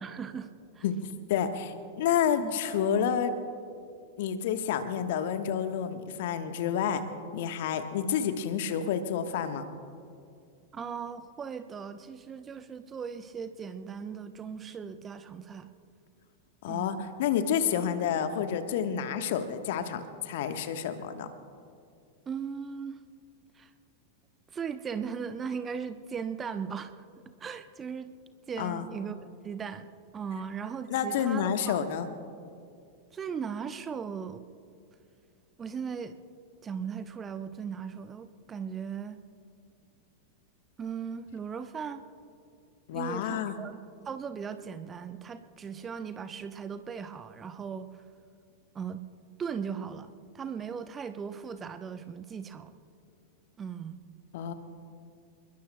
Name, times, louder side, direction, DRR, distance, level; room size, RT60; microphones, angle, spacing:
voice 1, 0.0-0.8 2.4-2.6 10.7-15.7 16.7-17.0 22.3-23.0 23.5-23.7 24.5-26.9 27.4-28.1 28.5-29.2 29.4-29.9 30.1-31.8 33.1-34.5 35.6-36.2 36.6-39.2 40.8-42.0 42.9-48.0 48.7-49.0 49.4-52.7 53.6-54.0, right 6 dB, 20° right, 11 dB, 0.8 m, -38 dB
voice 2, 1.3-3.3 4.2-7.0 7.3-9.7 16.6-21.3 28.6-28.8 30.9-32.1 42.9-43.6 54.3-54.5, left 8 dB, 55° left, 8 dB, 1.2 m, -29 dB
29.5 x 21.0 x 2.2 m, 2.4 s
figure-of-eight pair, 90°, 0 cm